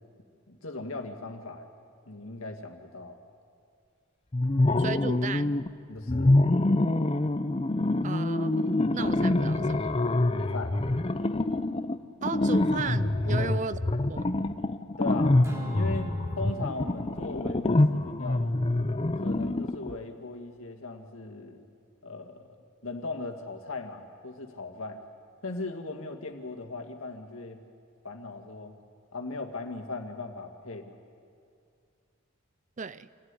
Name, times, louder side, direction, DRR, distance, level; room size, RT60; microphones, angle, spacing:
voice 1, 0.5-1.7 2.1-3.2 4.4-4.5 5.9-6.3 10.3-10.8 13.3-13.8 15.0-15.4 15.7-18.6 19.2-21.7 22.0-22.5 22.8-25.0 25.4-27.6 28.0-28.8 29.1-31.0, left 3 dB, 70° left, 4 dB, 2.0 m, -38 dB
sound 1, 4.3-5.7 6.1-20.0, left 2 dB, 25° left, 0.6 m, -26 dB
voice 2, 4.8-5.6 8.0-8.6 8.9-9.9 12.2-13.8 14.1-14.3 32.8-33.1, right 5 dB, 35° right, 15 dB, 0.5 m, -35 dB
Acoustic guitar / Strum, 15.4-19.9, right 1 dB, 15° right, 2.9 m, -44 dB
27.0 x 15.0 x 9.7 m, 2.4 s
head